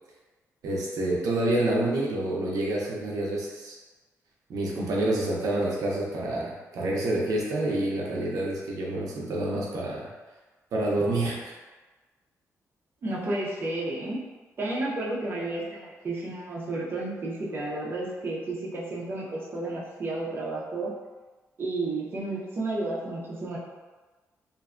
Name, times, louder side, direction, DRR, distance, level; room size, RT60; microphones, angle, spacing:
voice 1, 0.6-3.7 4.5-10.1 10.7-11.5, right 1 dB, 85° right, -3 dB, 0.5 m, -28 dB
voice 2, 13.0-14.2 14.6-20.9 21.6-23.6, right 2 dB, 40° right, -5 dB, 0.5 m, -32 dB
2.5 x 2.2 x 2.4 m, 1.3 s
wide cardioid pair, 150°, 6 cm